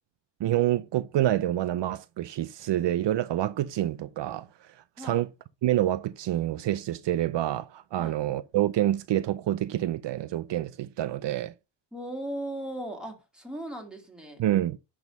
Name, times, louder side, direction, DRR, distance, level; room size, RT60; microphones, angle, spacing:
voice 1, 0.4-5.3 5.6-11.5 14.4-14.8, right 13 dB, 70° right, 0.6 m, -27 dB
voice 2, 11.9-14.4, right 1 dB, ahead, 2.5 m, -37 dB
11.0 x 3.7 x 5.3 m
wide cardioid pair, 125°, 44 cm